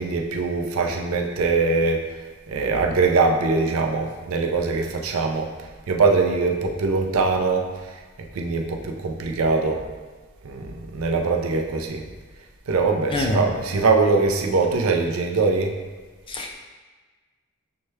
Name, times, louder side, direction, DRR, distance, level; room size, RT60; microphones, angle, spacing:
voice 1, 0.0-2.0 2.5-5.5 5.9-7.7 8.3-9.8 10.4-12.0 12.7-15.7, right 4 dB, 65° right, 2 dB, 0.5 m, -22 dB
voice 2, 13.1-13.4 16.3-16.5, left 2 dB, 25° left, 2 dB, 0.3 m, -25 dB
6.4 x 2.2 x 3.1 m, 1.3 s
head